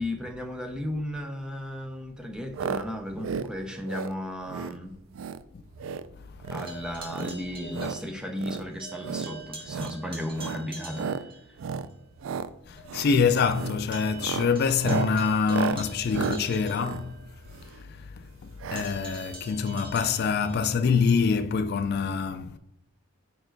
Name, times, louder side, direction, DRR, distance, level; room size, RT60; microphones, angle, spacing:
voice 1, 0.0-5.0 6.5-11.6, left 1 dB, 5° right, 0.6 m, -35 dB
sound 1, 2.5-2.8 3.1-3.5 3.8-4.1 4.5-4.8 5.1-5.4 5.7-6.1 6.4-6.7 7.1-8.0 8.4-8.6 9.0-9.3 9.6-10.0 10.3-10.6 10.9-11.2 11.6-11.9 12.2-12.5 12.8-13.1 13.5-13.8 14.1-17.8 18.6-18.9 19.1-19.2 19.4-19.5, right 6 dB, 70° right, 0.3 m, -33 dB
sound 2, 6.5-8.5 8.8-11.4 11.9-12.0 12.4-12.5 12.8-17.6 18.7-20.7, right 3 dB, 25° right, 1.4 m, -45 dB
voice 2, 12.7-17.1 17.6-18.3 18.7-22.6, left 5 dB, 50° left, 0.3 m, -25 dB
5.2 x 4.6 x 4.5 m
head